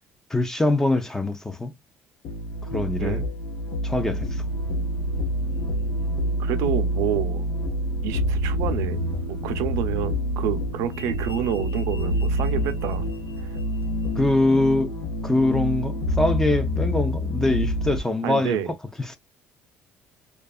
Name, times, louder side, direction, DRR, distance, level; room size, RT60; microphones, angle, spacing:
voice 1, 0.3-1.7 2.7-3.2 3.8-4.3 14.2-14.9 15.2-18.6, left 2 dB, 10° left, 0.4 m, -23 dB
sound 1, 2.2-18.0, equal, 70° left, 0.6 m, -27 dB
sound 2, 5.5-5.9 10.0-14.7, left 3 dB, 40° left, 1.0 m, -49 dB
voice 2, 6.4-7.5 8.0-9.0 9.3-13.1 18.2-18.7, right 10 dB, 80° right, 0.4 m, -28 dB
2.7 x 2.3 x 2.3 m
cardioid pair, 145°, 5 cm